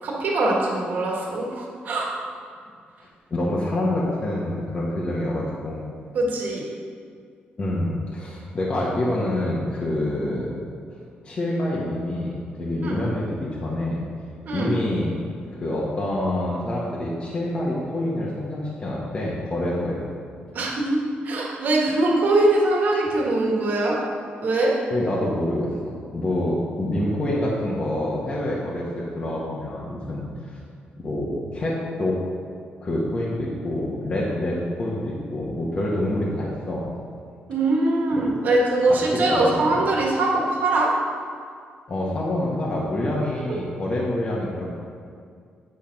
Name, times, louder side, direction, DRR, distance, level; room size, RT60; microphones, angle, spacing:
voice 1, 0.0-2.1 6.1-6.6 12.8-12.9 14.5-14.7 20.5-21.0 21.2-24.0 24.4-24.7 37.5-40.9 43.5-43.6, right 2 dB, 55° right, -3 dB, 1.6 m, -22 dB
voice 2, 3.3-5.8 7.6-10.6 11.2-14.0 14.5-15.1 15.5-20.0 24.9-30.6 31.0-32.2 32.8-36.9 38.1-38.2 38.9-39.0 39.3-39.9 41.9-44.7, left 1 dB, 30° left, -5 dB, 1.2 m, -26 dB
8.9 x 4.6 x 5.8 m, 2.2 s
cardioid pair, 140°, 4 cm